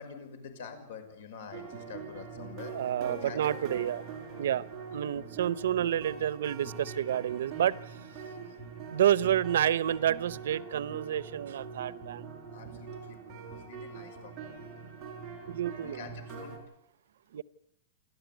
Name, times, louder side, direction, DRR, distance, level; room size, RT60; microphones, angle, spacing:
voice 1, 0.0-2.7 3.1-3.8 12.5-14.8 15.8-16.6, left 6 dB, 65° left, 8 dB, 5.7 m, -47 dB
sound 1, 1.5-16.6, right 5 dB, 15° right, 4.9 m, -43 dB
voice 2, 2.7-4.0 4.4-4.6 4.9-7.8 8.9-12.3 12.7-12.8 15.5-16.1 17.3-17.4, right 10 dB, 80° right, 19 dB, 0.8 m, -29 dB
29.0 x 12.5 x 9.3 m, 0.77 s
supercardioid pair, 180°, 0 cm